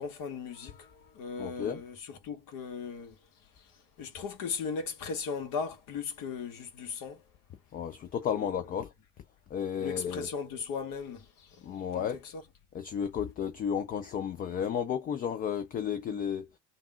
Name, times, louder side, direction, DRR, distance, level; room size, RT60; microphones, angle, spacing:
voice 1, 0.0-3.1 4.0-7.2 8.3-8.5 9.8-12.4, left 5 dB, 45° left, 1.2 m, -38 dB
voice 2, 1.4-1.8 7.7-8.9 9.5-10.3 11.6-12.2 12.7-16.5, left 8 dB, 20° left, 0.3 m, -33 dB
3.5 x 2.5 x 4.4 m
hypercardioid pair, 75°, 46 cm